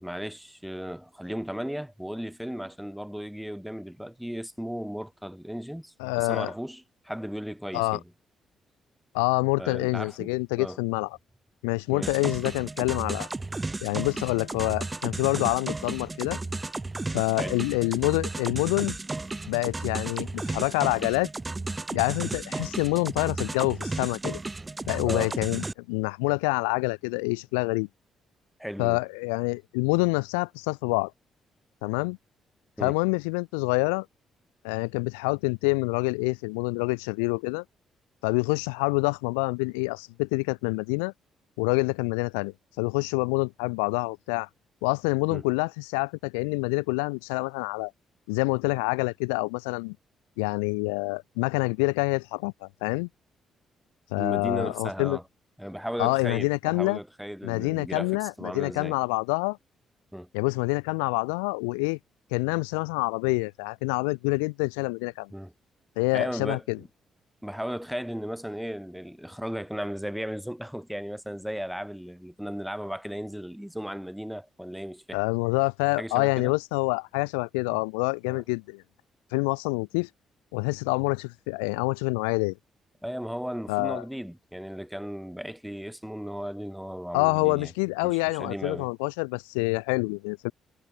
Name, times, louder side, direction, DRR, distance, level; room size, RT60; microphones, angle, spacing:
voice 1, 0.0-8.0 9.6-10.8 11.9-12.2 17.4-17.6 25.1-25.4 28.6-29.0 32.8-33.0 45.3-45.4 54.2-55.2 55.6-59.0 60.1-60.3 65.3-65.5 66.1-66.9 67.4-75.2 76.0-76.5 77.7-77.8 78.2-78.4 83.0-87.7 88.0-88.9, equal, ahead, 2.2 m, -36 dB
voice 2, 6.0-6.5 7.7-8.0 9.1-11.1 11.6-13.3 13.8-16.4 17.1-19.0 19.5-21.3 21.9-24.4 24.9-27.9 28.8-31.1 31.8-32.2 32.8-34.1 34.6-37.6 38.2-41.1 41.6-44.5 44.8-47.9 48.3-50.0 50.4-53.1 54.1-55.2 56.0-57.0 57.4-59.6 60.3-62.0 62.3-65.3 66.0-66.8 75.1-78.8 79.3-80.1 80.5-82.5 83.7-84.0 87.1-90.5, left 34 dB, 90° left, 0.3 m, -27 dB
sound 1, 12.0-25.7, right 2 dB, 25° right, 0.6 m, -34 dB
hypercardioid pair, 50°, 0 cm